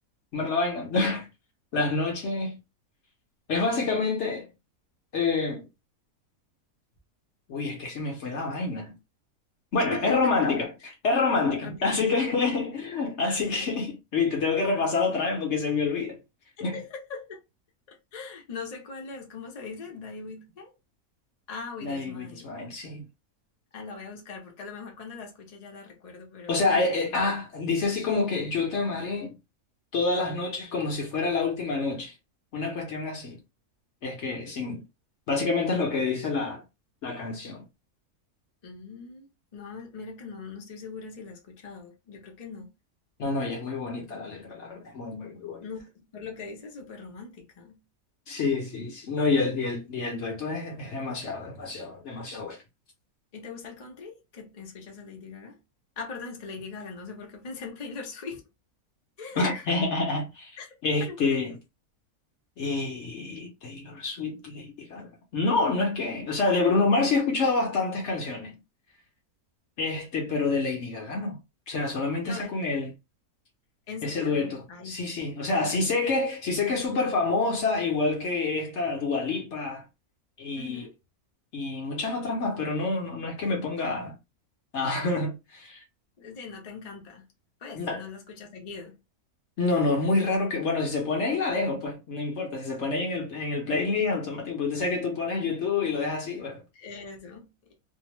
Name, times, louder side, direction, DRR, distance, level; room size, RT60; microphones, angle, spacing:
voice 1, 0.3-1.3 1.7-2.6 3.5-4.5 5.1-5.7 7.5-8.9 9.7-10.7 11.0-16.2 16.6-16.8 21.8-23.1 26.5-29.4 29.9-32.1 32.5-33.4 34.0-34.8 35.3-36.6 37.0-37.6 43.2-45.6 48.3-52.6 59.4-60.6 60.8-61.6 62.6-68.6 69.8-71.4 71.7-72.9 74.0-79.8 80.4-80.9 81.5-84.2 84.7-85.8 87.7-88.0 89.6-96.6, left 3 dB, 55° left, 0.9 m, -27 dB
voice 2, 9.9-10.3 11.6-12.0 12.5-12.6 13.5-13.6 16.6-17.4 17.9-20.7 21.5-22.5 23.7-27.3 38.6-42.7 45.6-47.8 53.3-55.6 56.0-58.4 59.2-59.8 60.6-60.7 61.1-61.4 72.2-72.6 73.9-75.0 80.6-80.9 86.2-87.2 87.6-89.0 96.7-97.5, left 4 dB, 40° left, 0.6 m, -41 dB
2.7 x 2.0 x 3.0 m
omnidirectional pair, 1.6 m